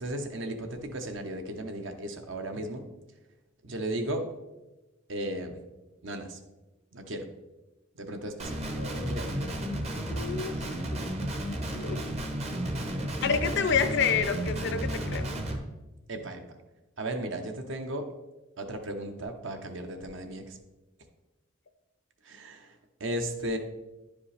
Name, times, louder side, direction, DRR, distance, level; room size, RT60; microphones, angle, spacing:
voice 1, 0.0-2.8 3.6-4.3 5.1-5.6 6.0-6.4 6.9-7.3 8.0-8.6 9.1-9.3 16.1-16.4 17.0-18.1 18.6-20.6 22.2-23.6, right 1 dB, 60° right, 6 dB, 0.8 m, -35 dB
Guitar, 8.4-15.6, right 1 dB, 30° right, 0.8 m, -33 dB
voice 2, 8.8-9.5 10.1-10.5 10.9-11.0 11.7-12.0 13.2-15.4, left 6 dB, 55° left, 10 dB, 0.5 m, -29 dB
10.0 x 5.1 x 3.3 m, 1.1 s
head